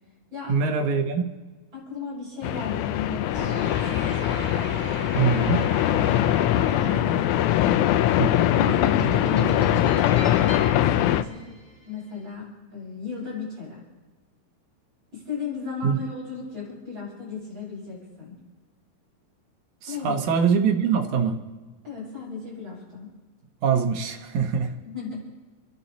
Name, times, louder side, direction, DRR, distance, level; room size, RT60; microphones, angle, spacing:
voice 1, 0.5-1.3 5.1-5.7 8.2-8.4 15.8-16.0 19.8-21.4 23.6-24.7, right 6 dB, 65° right, 5 dB, 2.4 m, -23 dB
voice 2, 1.7-4.5 6.7-7.1 8.5-11.6 11.8-13.8 15.1-18.4 19.9-20.2 21.8-23.1 24.8-25.2, left 5 dB, 35° right, -6 dB, 7.0 m, -35 dB
sound 1, 2.4-11.2, left 12 dB, 80° left, 1.8 m, -22 dB
sound 2, 3.3-11.9, right 2 dB, 15° right, 2.0 m, -37 dB
29.5 x 11.0 x 4.2 m, 1.3 s
omnidirectional pair, 3.9 m